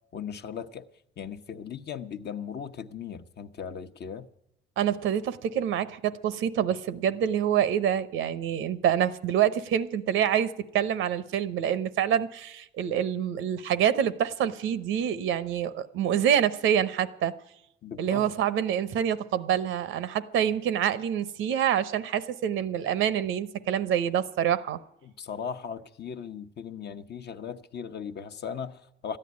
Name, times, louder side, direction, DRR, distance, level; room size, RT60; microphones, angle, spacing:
voice 1, 0.1-0.8 1.2-4.3 17.8-18.3 25.0-29.2, left 7 dB, 55° left, 0.9 m, -38 dB
voice 2, 4.8-17.3 18.0-24.8, right 9 dB, 85° right, 0.9 m, -26 dB
13.5 x 10.0 x 9.5 m
cardioid pair, 90°, 20 cm